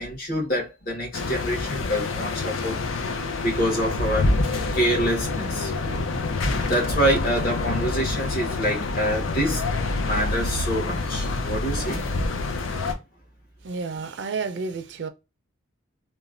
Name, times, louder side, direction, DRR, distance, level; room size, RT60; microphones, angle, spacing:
voice 1, 0.0-2.8 3.4-4.3 4.7-5.7 6.6-9.6 10.0-12.0, equal, 45° left, 1.2 m, -26 dB
sound 1, 1.1-12.9, left 3 dB, 85° left, 0.5 m, -27 dB
voice 2, 13.6-15.1, right 4 dB, 65° right, 0.4 m, -30 dB
3.0 x 2.1 x 2.4 m
head